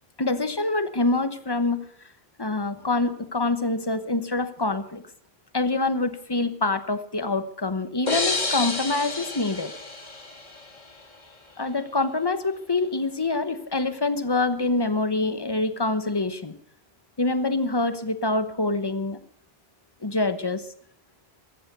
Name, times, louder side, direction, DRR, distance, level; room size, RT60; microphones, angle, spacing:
voice 1, 0.2-1.8 2.4-5.0 5.5-9.7 11.6-16.5 17.2-19.2 20.0-20.7, left 2 dB, 25° left, 12 dB, 1.1 m, -25 dB
sound 1, 8.1-10.8, left 3 dB, 45° left, 2.0 m, -29 dB
16.0 x 13.0 x 6.7 m, 0.63 s
omnidirectional pair, 1.1 m